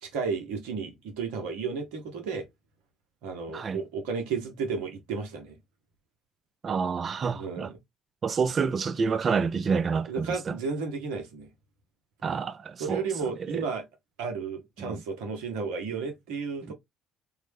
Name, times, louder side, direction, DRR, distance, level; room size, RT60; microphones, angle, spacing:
voice 1, 0.0-2.5 3.2-5.6 7.3-7.7 10.1-11.5 12.8-13.8 14.2-16.7, right 5 dB, 80° right, 0.8 m, -33 dB
voice 2, 6.6-7.7 8.2-10.6 12.2-13.6 14.8-15.0 16.7-16.8, right 5 dB, 45° right, 0.5 m, -28 dB
3.7 x 2.1 x 3.2 m
hypercardioid pair, 55°, 0 cm